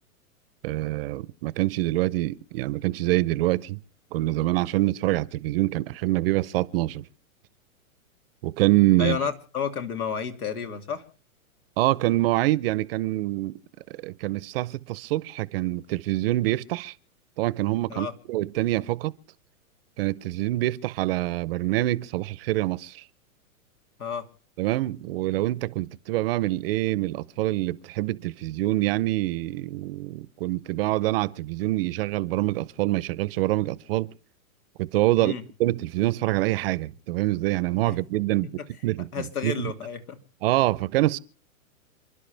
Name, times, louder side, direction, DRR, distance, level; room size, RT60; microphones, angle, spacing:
voice 1, 0.6-3.8 4.1-7.0 8.4-9.2 11.8-13.6 13.9-16.9 17.4-19.1 20.0-23.0 24.6-34.1 34.8-38.5 38.8-39.1 39.4-39.7 40.4-41.2, right 17 dB, 40° right, 0.7 m, -25 dB
voice 2, 9.0-11.0 17.9-18.1 24.0-24.2 35.2-35.4 37.9-38.0 38.3-38.7 39.1-40.2, left 7 dB, 85° left, 2.6 m, -31 dB
29.0 x 11.5 x 3.4 m
hypercardioid pair, 130°, 43 cm